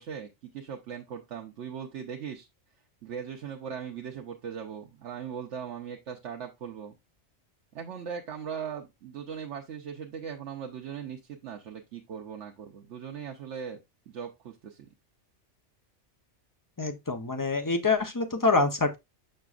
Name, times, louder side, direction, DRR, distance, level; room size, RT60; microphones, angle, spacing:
voice 1, 0.0-2.5 3.0-6.9 7.7-13.8 14.1-14.9, right 7 dB, 85° right, 1.1 m, -39 dB
voice 2, 16.8-19.0, left 3 dB, 20° left, 0.6 m, -26 dB
6.6 x 6.0 x 2.4 m
omnidirectional pair, 1.2 m